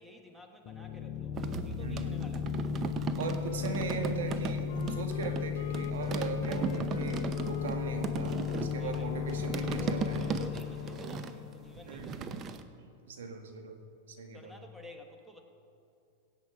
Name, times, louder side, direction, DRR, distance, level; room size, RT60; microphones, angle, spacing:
voice 1, 0.0-2.7 8.8-9.1 9.5-12.6 14.3-15.4, equal, ahead, 2 dB, 1.5 m, -51 dB
sound 1, 0.7-12.2, left 8 dB, 45° left, 0.9 m, -35 dB
sound 2, 1.4-5.5 5.7-12.6, right 6 dB, 30° right, 0.7 m, -37 dB
voice 2, 1.8-2.1 3.2-10.2 11.9-12.3 12.8-13.8 14.1-14.5, right 5 dB, 85° right, 4 dB, 1.6 m, -39 dB
Wind instrument woodwind instrument, 3.3-10.1, left 12 dB, 65° left, 0.4 m, -47 dB
16.5 x 8.4 x 4.9 m, 2.7 s
hypercardioid pair, 130°, 0 cm